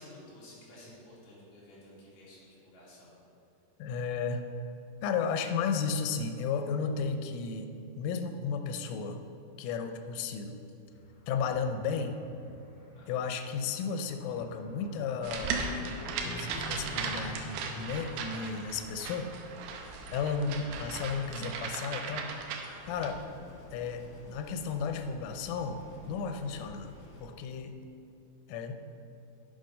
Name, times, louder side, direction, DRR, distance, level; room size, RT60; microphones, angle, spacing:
voice 1, 0.0-3.1 12.9-13.2, left 1 dB, 50° left, -8 dB, 3.6 m, -52 dB
voice 2, 3.8-4.4 5.0-7.7 8.0-9.2 9.6-10.6 11.3-12.2 13.1-15.7 16.2-19.4 20.1-22.3 22.9-23.2 23.7-26.9 27.2-27.8 28.5-28.7, left 5 dB, 90° left, 7 dB, 3.2 m, -33 dB
Car, 10.9-17.8, left 1 dB, 30° left, 1.7 m, -47 dB
sound 1, 15.2-23.1, right 4 dB, 80° right, 2.8 m, -37 dB
sound 2, 22.9-27.2, equal, 75° left, 4.4 m, -51 dB
9.2 x 6.8 x 5.3 m, 2.6 s
omnidirectional pair, 5.6 m